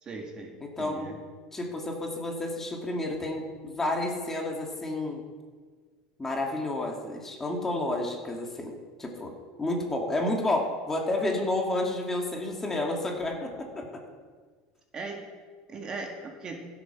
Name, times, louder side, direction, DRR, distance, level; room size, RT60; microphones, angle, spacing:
voice 1, 0.0-0.5 0.8-1.2 14.9-15.3 15.7-16.7, right 3 dB, 30° right, 2 dB, 1.9 m, -38 dB
voice 2, 0.6-1.1 1.5-5.2 6.2-8.7 9.0-9.3 9.6-14.0, left 2 dB, 15° left, 1 dB, 2.2 m, -30 dB
15.5 x 8.0 x 6.0 m, 1.5 s
supercardioid pair, 120°, 3 cm